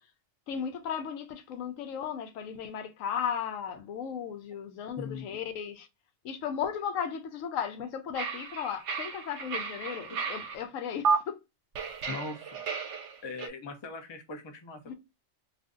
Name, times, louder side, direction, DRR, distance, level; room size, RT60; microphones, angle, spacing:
voice 1, 0.5-5.9 6.2-11.4 14.9-15.0, left 8 dB, 80° left, 1.0 m, -35 dB
voice 2, 5.0-5.3 10.1-10.2 12.1-12.6 13.2-14.9, left 3 dB, 45° left, 0.3 m, -40 dB
sound 1, 8.1-10.6 11.0-11.2 11.7-13.5, right 5 dB, 70° right, 0.8 m, -33 dB
2.5 x 2.5 x 3.6 m
omnidirectional pair, 1.3 m